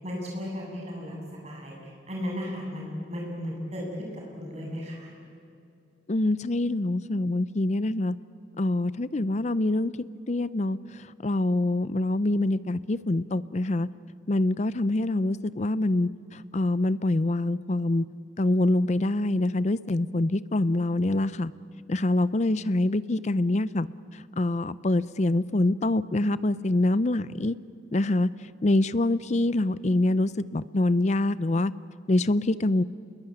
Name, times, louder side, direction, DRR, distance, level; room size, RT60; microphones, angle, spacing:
voice 1, 0.0-5.1, equal, 35° right, -2 dB, 7.9 m, -35 dB
voice 2, 6.1-8.1 8.6-9.9 10.3-10.8 11.2-13.9 14.3-18.1 18.4-21.5 21.9-23.9 24.4-27.6 27.9-28.3 28.6-31.7 32.1-32.8, left 2 dB, 35° left, 17 dB, 0.5 m, -25 dB
28.5 x 21.5 x 9.0 m, 2.5 s
head